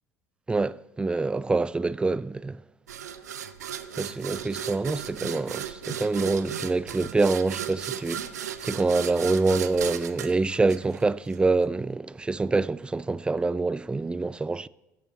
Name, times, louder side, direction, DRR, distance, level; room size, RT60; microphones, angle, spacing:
voice 1, 0.5-2.6 4.0-8.3 8.6-14.7, right 3 dB, 10° right, 0.3 m, -26 dB
sound 1, 2.9-11.4, right 9 dB, 80° right, 0.5 m, -36 dB
15.5 x 8.0 x 4.2 m
figure-of-eight pair, 65°, 9 cm